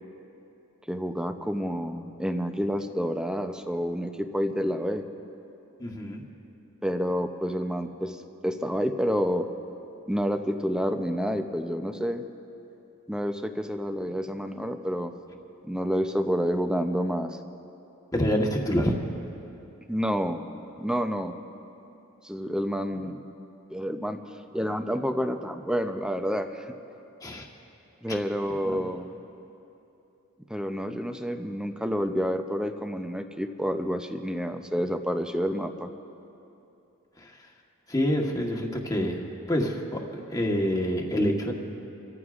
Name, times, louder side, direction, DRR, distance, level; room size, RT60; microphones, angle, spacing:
voice 1, 0.9-5.0 6.8-9.5 10.1-12.2 13.1-15.1 15.6-17.4 19.9-20.4 20.8-21.3 22.2-23.2 23.7-24.2 24.5-26.7 28.0-29.1 30.5-35.9, equal, 5° right, 6 dB, 0.6 m, -29 dB
voice 2, 5.8-6.2 18.1-18.9 27.2-27.5 28.1-28.2 28.6-28.8 37.9-39.2 39.5-39.8 40.1-41.5, equal, 15° left, 0 dB, 1.2 m, -26 dB
28.5 x 14.5 x 2.5 m, 2.9 s
head